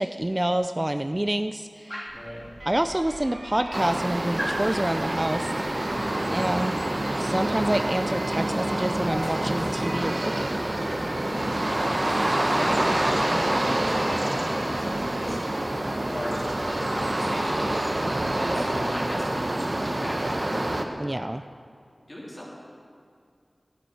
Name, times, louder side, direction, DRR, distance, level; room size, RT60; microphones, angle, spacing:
voice 1, 0.0-2.0 2.7-5.5 6.3-6.8 7.2-10.6 21.0-21.4, right 1 dB, 25° right, 9 dB, 0.3 m, -27 dB
Dog, 1.9-2.3 3.2-3.3 3.5-4.0 4.4-4.7 5.8-6.1 8.0-8.1 8.4-11.1 11.4-13.3 14.6-14.7 15.0-15.1 15.4-16.7, equal, 10° left, 2.1 m, -39 dB
voice 2, 2.1-2.4 6.1-6.4 11.2-11.6 12.3-17.7 18.3-20.7 22.1-22.5, equal, 40° left, -6 dB, 3.2 m, -37 dB
Alarm, 2.1-19.3, right 1 dB, 70° right, 1.3 m, -44 dB
sound 1, 3.7-20.8, right 1 dB, 45° right, 0.9 m, -27 dB
10.5 x 10.0 x 4.6 m, 2.3 s
wide cardioid pair, 40°, 0 cm